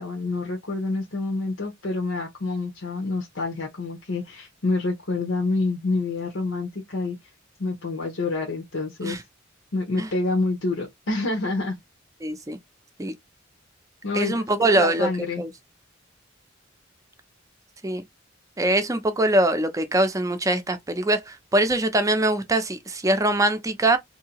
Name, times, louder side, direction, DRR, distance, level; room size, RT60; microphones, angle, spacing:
voice 1, 0.0-7.2 7.6-9.2 9.7-11.8 14.0-15.4, left 3 dB, 85° left, 0.9 m, -27 dB
voice 2, 12.2-12.6 13.0-13.1 14.1-15.1 15.4-15.5 17.8-18.0 18.6-24.0, right 1 dB, 15° right, 0.5 m, -23 dB
2.7 x 2.7 x 2.9 m
head